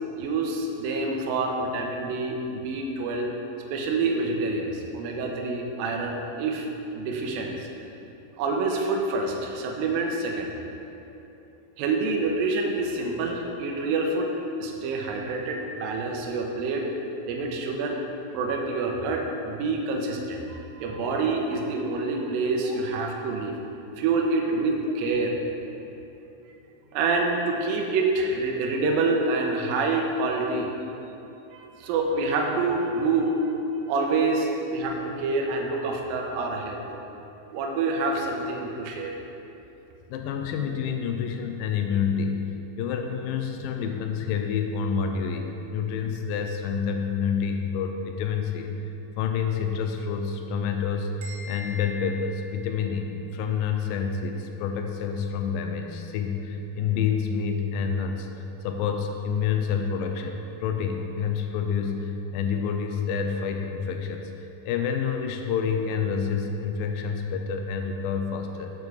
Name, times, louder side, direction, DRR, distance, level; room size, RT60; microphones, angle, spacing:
voice 1, 0.2-3.3 3.7-6.7 6.9-7.7 8.4-10.5 11.8-14.3 14.6-16.9 17.3-18.0 18.3-23.5 24.0-25.4 26.9-30.7 31.5-33.5 33.9-36.8 37.5-39.1, right 3 dB, 75° right, 1 dB, 2.3 m, -27 dB
voice 2, 40.1-48.9 49.2-68.7, left 6 dB, 85° left, 4 dB, 2.0 m, -28 dB
sound 1, 51.2-53.2, left 1 dB, 50° right, 2.6 m, -43 dB
8.2 x 7.0 x 4.7 m, 3.0 s
omnidirectional pair, 4.7 m